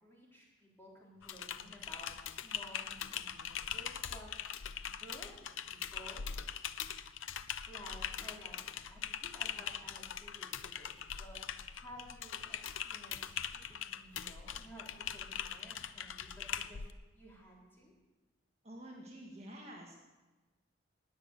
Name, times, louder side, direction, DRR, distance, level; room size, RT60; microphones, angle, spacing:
voice 1, 0.0-5.3 5.7-6.2 7.7-8.6 8.9-11.4 11.7-16.8 17.1-17.9, equal, 10° left, -4 dB, 3.9 m, -55 dB
Typing, 1.2-16.9, left 9 dB, 75° left, 0.6 m, -42 dB
voice 2, 18.6-20.0, right 1 dB, 30° right, -1 dB, 1.7 m, -49 dB
20.0 x 6.9 x 8.3 m, 1.2 s
head